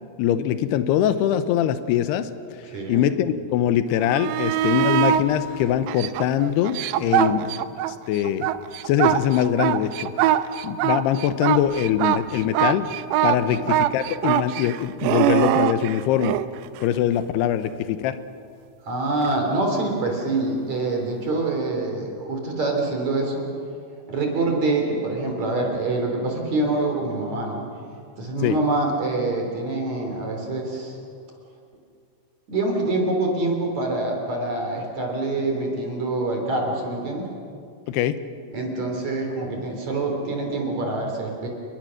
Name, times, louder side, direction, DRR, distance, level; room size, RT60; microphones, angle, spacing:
voice 1, 0.2-2.3 2.9-7.4 7.9-8.5 8.9-10.1 10.6-12.9 13.2-16.4 16.8-18.2 28.4-28.6 37.9-38.2, left 10 dB, 80° left, 11 dB, 2.4 m, -22 dB
voice 2, 2.7-3.0 7.0-7.4 13.3-13.7 18.8-23.5 24.1-27.6 28.2-31.0 32.5-37.3 38.5-41.5, right 2 dB, 40° right, 1 dB, 3.9 m, -25 dB
sound 1, 4.0-5.3 5.9-7.9 8.3-16.5 19.2-19.3, right 12 dB, 85° right, 2.5 m, -22 dB
30.0 x 21.0 x 6.4 m, 2.3 s
omnidirectional pair, 5.7 m